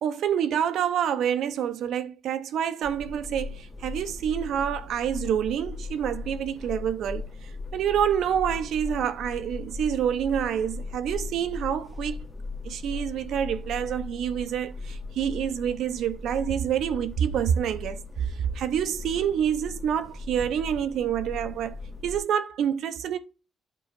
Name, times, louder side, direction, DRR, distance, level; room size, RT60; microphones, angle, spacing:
voice 1, 0.0-12.2 12.6-21.8 22.0-23.2, right 9 dB, 75° right, 0.8 m, -27 dB
sound 1, 2.8-22.2, left 3 dB, 25° left, 1.5 m, -38 dB
9.1 x 3.9 x 5.3 m
cardioid pair, 90°, 0 cm